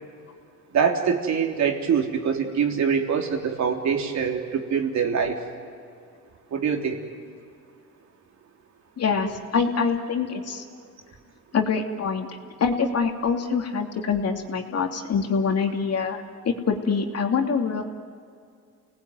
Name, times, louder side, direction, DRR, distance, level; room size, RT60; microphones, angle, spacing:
voice 1, 0.7-5.4 6.5-7.0, right 6 dB, 65° right, 3 dB, 3.5 m, -24 dB
voice 2, 9.0-10.6 11.5-17.8, left 5 dB, 55° left, 4 dB, 2.8 m, -25 dB
29.5 x 19.5 x 9.5 m, 2.3 s
cardioid pair, 90°, 30 cm